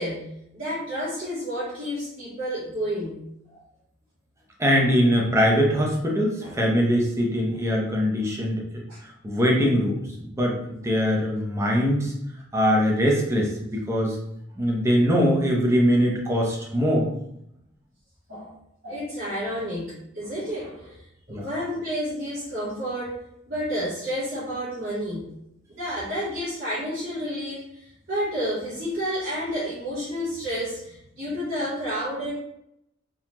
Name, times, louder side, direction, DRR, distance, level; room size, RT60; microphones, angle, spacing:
voice 1, 0.0-3.2 3.5-3.6 6.4-6.5 8.9-9.0 18.3-18.6 18.8-23.2 23.5-25.3 25.8-32.3, equal, 50° right, -12 dB, 1.5 m, -30 dB
voice 2, 4.6-8.6 9.0-12.1 12.5-14.2 14.6-17.1 21.3-21.5, equal, 15° right, -2 dB, 0.7 m, -22 dB
3.9 x 2.8 x 3.0 m, 0.78 s
head